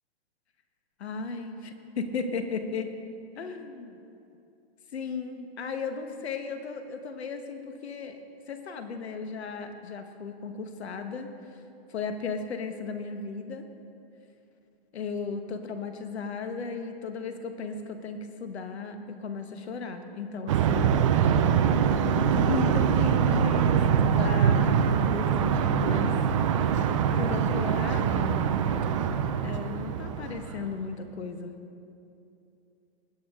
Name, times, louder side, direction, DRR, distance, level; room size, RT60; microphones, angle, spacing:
voice 1, 1.0-2.9 3.4-4.0 4.9-8.2 8.5-11.3 11.9-13.7 14.9-21.0 22.0-26.2 27.1-28.4 29.4-31.5, left 5 dB, 80° left, 7 dB, 1.4 m, -35 dB
sound 1, 20.5-30.8, right 7 dB, 30° right, 0.4 m, -24 dB
20.0 x 8.7 x 3.7 m, 2.7 s
hypercardioid pair, 155°, 32 cm